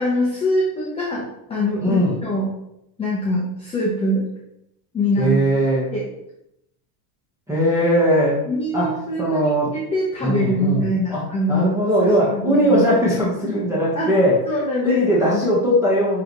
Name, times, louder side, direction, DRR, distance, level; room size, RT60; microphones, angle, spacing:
voice 1, 0.0-2.5 3.0-4.2 4.9-5.4 5.9-6.1 8.5-11.7 12.5-12.8 13.9-14.1 14.5-15.4, left 1 dB, 10° left, -5 dB, 1.0 m, -23 dB
voice 2, 1.8-2.2 5.2-5.9 7.5-8.4 8.7-8.9 9.2-9.7 10.2-11.2 11.5-14.4 14.8-16.2, equal, 5° right, -7 dB, 1.5 m, -19 dB
11.0 x 3.7 x 3.2 m, 0.81 s
supercardioid pair, 160°, 49 cm